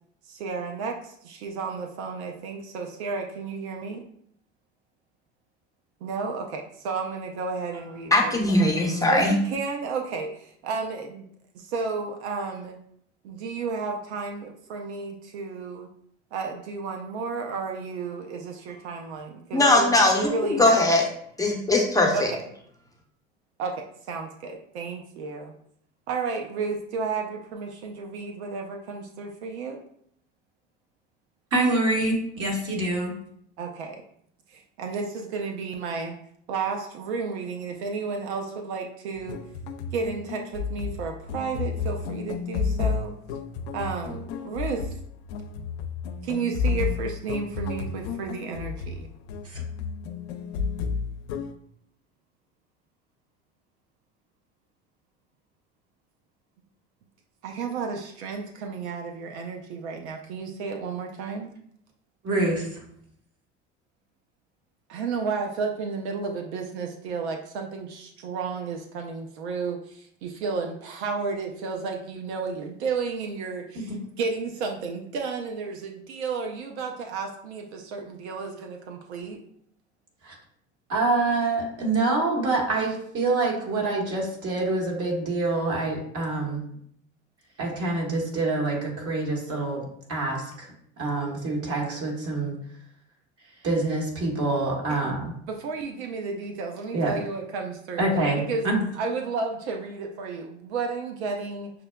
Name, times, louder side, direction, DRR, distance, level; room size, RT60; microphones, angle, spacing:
voice 1, 0.3-4.0 6.0-8.6 9.1-11.2 11.5-12.8 13.2-15.9 16.3-20.8 22.1-22.4 23.6-25.5 26.1-29.8 33.6-34.0 34.5-36.1 36.5-39.4 39.9-43.2 43.7-44.9 46.2-49.1 57.4-61.5 64.9-79.4 94.9-95.2 95.5-98.1 98.5-98.7 99.0-101.7, right 4 dB, 80° right, 3 dB, 0.5 m, -32 dB
voice 2, 8.1-9.4 19.5-21.0 21.4-22.3, left 2 dB, 10° left, -1 dB, 0.7 m, -20 dB
voice 3, 31.5-33.1 49.4-49.6 62.2-62.8 73.7-74.0 80.2-80.4 80.9-86.6 87.6-89.8 90.1-90.7 91.0-92.5 93.6-95.3 96.9-97.1 98.0-98.8, right 2 dB, 45° right, -1 dB, 1.5 m, -26 dB
sound 1, 39.2-51.5, left 5 dB, 75° left, 0.5 m, -31 dB
5.9 x 2.2 x 2.2 m, 0.68 s
hypercardioid pair, 75°, 33 cm